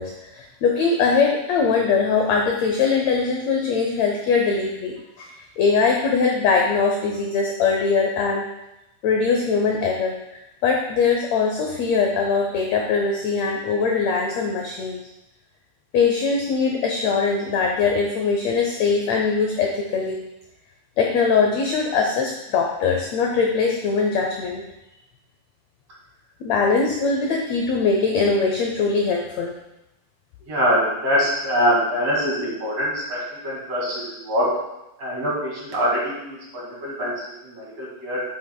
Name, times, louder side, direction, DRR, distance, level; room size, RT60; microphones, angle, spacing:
voice 1, 0.0-8.5 9.0-10.2 10.6-15.0 15.9-20.2 21.0-24.6 26.4-29.6, left 5 dB, 80° left, 1 dB, 1.5 m, -21 dB
voice 2, 30.4-34.5 35.0-38.2, equal, 50° right, -5 dB, 3.1 m, -24 dB
8.5 x 7.8 x 2.3 m, 0.92 s
omnidirectional pair, 3.9 m